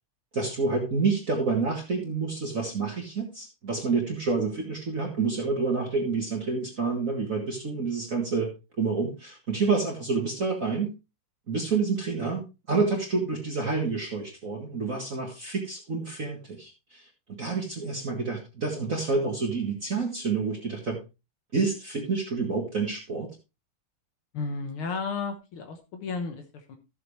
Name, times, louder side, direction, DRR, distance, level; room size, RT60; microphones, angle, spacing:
voice 1, 0.3-8.5 8.8-10.9 11.5-17.1 17.4-21.0 21.5-23.3, right 4 dB, 40° right, 0 dB, 2.0 m, -28 dB
voice 2, 24.3-26.8, left 4 dB, 75° left, 5 dB, 2.1 m, -33 dB
13.5 x 7.7 x 3.2 m, 0.27 s
omnidirectional pair, 2.4 m